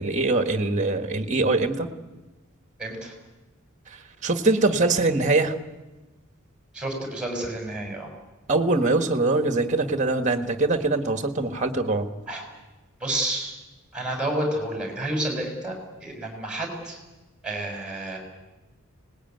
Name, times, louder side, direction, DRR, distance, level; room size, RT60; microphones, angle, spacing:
voice 1, 0.0-1.9 4.2-5.5 8.5-12.1, right 2 dB, 35° right, 7 dB, 1.6 m, -23 dB
voice 2, 2.8-3.1 6.7-8.1 12.3-12.4 13.0-13.6 13.9-17.0 17.4-18.2, right 1 dB, 5° right, 2 dB, 6.6 m, -30 dB
25.0 x 19.5 x 9.4 m, 1.2 s
head